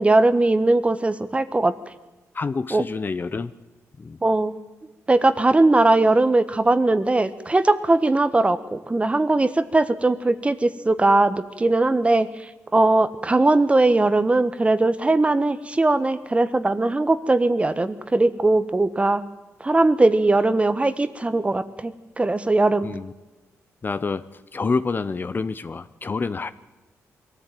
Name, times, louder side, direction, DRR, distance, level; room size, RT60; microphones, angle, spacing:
voice 1, 0.0-1.7 2.7-2.8 4.2-4.6 5.1-12.3 12.7-19.2 19.6-22.9, right 2 dB, 20° right, 13 dB, 1.2 m, -20 dB
voice 2, 2.3-3.5 4.0-4.2 22.8-23.1 23.8-26.5, left 4 dB, 35° left, 14 dB, 0.7 m, -27 dB
22.0 x 14.5 x 9.1 m, 1.1 s
cardioid pair, 85°, 6 cm